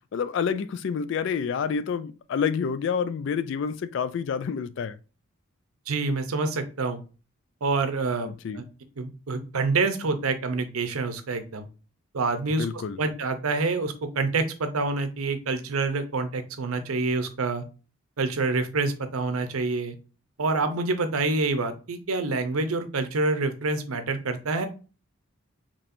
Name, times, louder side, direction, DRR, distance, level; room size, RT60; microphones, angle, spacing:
voice 1, 0.1-5.0 8.4-8.6 12.6-13.0, left 6 dB, 60° left, 0.3 m, -28 dB
voice 2, 5.9-7.0 7.6-8.6 9.0-11.7 12.1-12.7 13.0-17.6 18.2-19.9 20.4-24.7, right 3 dB, 90° right, 0.7 m, -27 dB
4.2 x 3.0 x 2.5 m
head